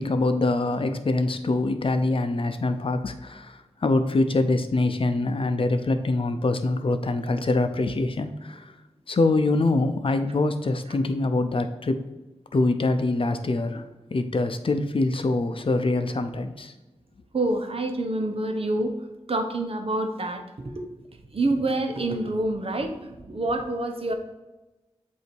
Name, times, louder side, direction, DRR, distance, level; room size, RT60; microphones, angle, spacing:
voice 1, 0.0-8.7 9.1-12.0 12.5-16.7, left 2 dB, 55° left, 8 dB, 0.6 m, -24 dB
voice 2, 17.3-18.9 19.3-20.9 21.3-24.1, right 2 dB, 60° right, 4 dB, 0.9 m, -27 dB
8.0 x 2.8 x 4.6 m, 1.1 s
wide cardioid pair, 65°, 11 cm